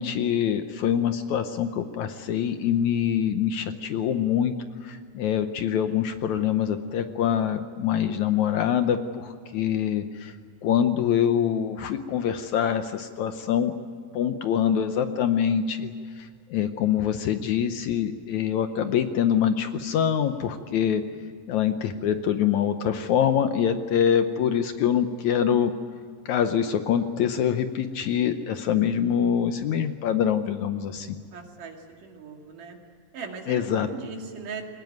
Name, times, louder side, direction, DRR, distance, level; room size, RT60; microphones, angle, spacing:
voice 1, 0.0-4.6 4.8-10.3 10.6-13.8 14.1-21.0 21.5-25.7 26.3-31.2 33.5-33.9, left 9 dB, 70° left, 9 dB, 1.9 m, -25 dB
voice 2, 31.3-32.8 33.1-34.6, right 5 dB, 70° right, 2 dB, 3.8 m, -39 dB
22.5 x 20.0 x 9.4 m, 2.1 s
omnidirectional pair, 3.9 m